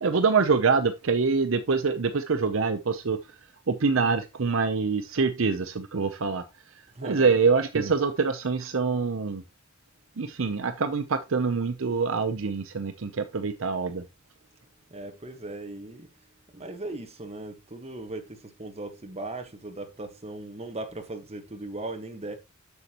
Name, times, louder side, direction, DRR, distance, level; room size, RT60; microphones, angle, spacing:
voice 1, 0.0-3.2 3.7-6.4 7.0-9.4 10.2-14.0, right 4 dB, 65° right, 0.7 m, -25 dB
voice 2, 6.9-7.3 14.9-16.1 16.5-22.3, right 2 dB, 30° right, 1.3 m, -38 dB
8.1 x 6.7 x 2.9 m
head